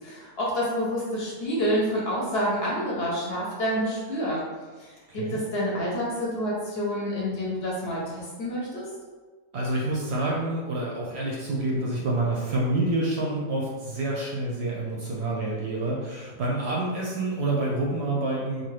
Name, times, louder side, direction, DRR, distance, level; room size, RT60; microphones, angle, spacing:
voice 1, 0.0-4.4 4.8-8.9, equal, 55° left, -5 dB, 0.8 m, -28 dB
voice 2, 5.1-5.4 9.5-18.7, right 2 dB, 65° right, -4 dB, 0.7 m, -28 dB
2.8 x 2.2 x 3.2 m, 1.4 s
omnidirectional pair, 1.4 m